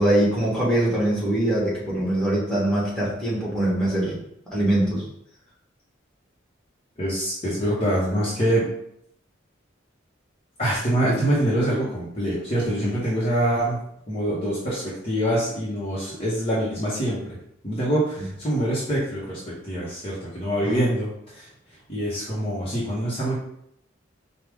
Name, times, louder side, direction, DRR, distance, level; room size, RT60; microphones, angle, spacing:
voice 1, 0.0-4.2 4.5-5.1 20.6-20.9, right 1 dB, 5° left, -8 dB, 1.4 m, -23 dB
voice 2, 7.0-8.6 10.6-13.8 14.1-17.4 17.6-21.5 21.9-23.4, right 1 dB, 30° left, -8 dB, 0.9 m, -25 dB
4.8 x 2.3 x 3.5 m, 0.74 s
head